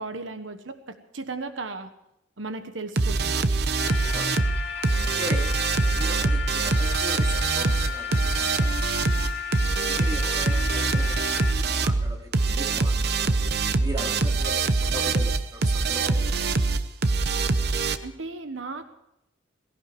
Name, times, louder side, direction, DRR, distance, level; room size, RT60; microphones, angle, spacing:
voice 1, 0.0-1.9 2.4-3.4 18.0-18.8, right 3 dB, 85° right, 9 dB, 1.2 m, -35 dB
sound 1, 3.0-18.0, right 3 dB, 55° right, 0.8 m, -24 dB
sound 2, 3.8-11.5, left 7 dB, 55° left, 2.5 m, -33 dB
voice 2, 4.0-4.4 5.2-5.5 5.9-9.1 9.8-13.4 13.8-16.7, equal, 20° right, 1 dB, 2.5 m, -39 dB
18.5 x 16.5 x 4.7 m, 0.83 s
head